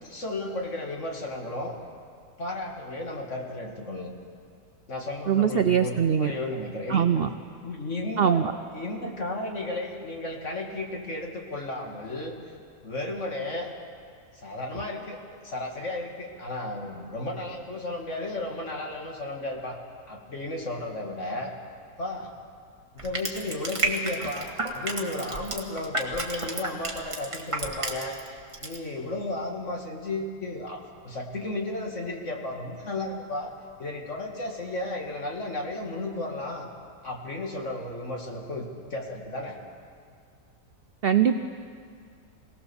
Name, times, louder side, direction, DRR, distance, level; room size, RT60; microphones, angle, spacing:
voice 1, 0.0-1.8 2.4-4.1 4.9-7.3 7.6-12.3 12.8-13.7 14.3-15.2 15.4-19.8 20.1-21.6 22.0-22.3 22.9-36.7 37.0-39.6, left 2 dB, 45° left, 1 dB, 2.4 m, -34 dB
voice 2, 5.3-6.3 6.9-7.3 8.2-8.5 41.0-41.4, right 8 dB, 75° right, 9 dB, 0.5 m, -22 dB
Crushing, 23.0-28.3 28.5-28.8, right 2 dB, 20° right, 1.8 m, -31 dB
22.5 x 18.0 x 7.1 m, 2.2 s
omnidirectional pair, 1.7 m